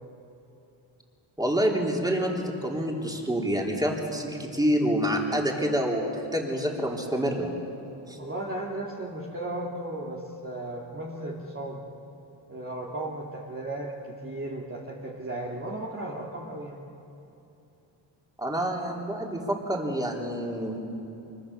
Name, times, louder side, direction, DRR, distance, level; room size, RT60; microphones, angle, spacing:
voice 1, 1.4-7.5 8.1-8.2 18.4-20.8, equal, 10° right, -1 dB, 3.7 m, -27 dB
voice 2, 8.2-11.8 12.5-16.8, right 1 dB, 30° right, -3 dB, 2.4 m, -35 dB
25.0 x 24.0 x 7.0 m, 2.9 s
wide cardioid pair, 100°, 45 cm